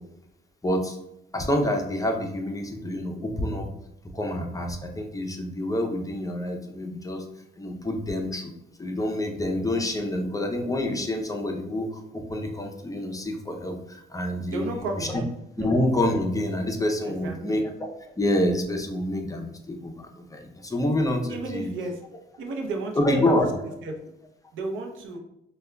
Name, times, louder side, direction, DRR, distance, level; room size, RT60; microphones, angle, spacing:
voice 1, 0.6-1.0 1.3-3.7 4.1-7.2 7.6-8.5 8.8-15.2 15.6-17.7 18.2-21.7 23.0-23.5, left 1 dB, 15° left, 3 dB, 0.5 m, -27 dB
voice 2, 14.5-15.3 15.6-15.7 17.1-17.7 21.3-22.0 22.4-23.5 23.8-24.0 24.5-25.2, right 2 dB, 75° right, 3 dB, 0.6 m, -33 dB
4.8 x 2.2 x 2.2 m, 0.84 s
cardioid pair, 90°, 20 cm